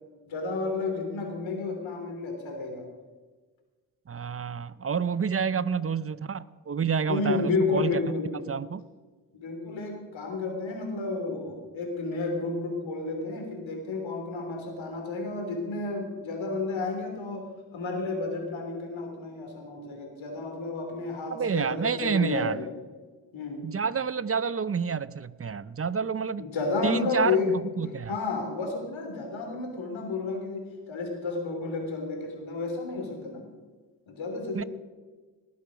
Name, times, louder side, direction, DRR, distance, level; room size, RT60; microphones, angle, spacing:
voice 1, 0.2-2.8 5.3-5.8 7.1-8.4 9.3-22.7 23.3-23.7 26.4-27.5 28.1-33.5 34.1-34.7, left 3 dB, 90° left, 3 dB, 3.2 m, -31 dB
voice 2, 4.1-8.0 8.5-8.8 21.3-22.6 23.6-26.4 26.8-28.2 34.5-34.6, right 6 dB, 30° right, 18 dB, 0.5 m, -29 dB
19.5 x 8.5 x 5.1 m, 1.4 s
cardioid pair, 60°, 45 cm